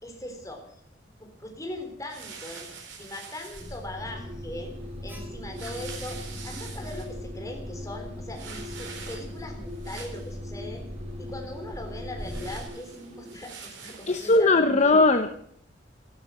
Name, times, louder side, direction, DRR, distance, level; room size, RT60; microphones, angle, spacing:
voice 1, 0.0-0.6 1.2-2.7 3.0-4.7 5.0-10.8 11.2-12.9 13.2-14.9, left 1 dB, 20° left, 2 dB, 3.8 m, -40 dB
sound 1, 2.1-3.8 5.5-7.1 8.3-9.4 9.7-10.3 12.2-14.4, right 5 dB, 90° right, 4.1 m, -44 dB
Alarm, 3.5-12.6, left 1 dB, 10° right, 5.0 m, -39 dB
sound 2, 4.0-13.3, left 1 dB, 40° right, 2.2 m, -44 dB
voice 2, 14.1-15.3, left 3 dB, 40° left, 8 dB, 0.8 m, -19 dB
13.0 x 12.5 x 7.6 m, 0.65 s
head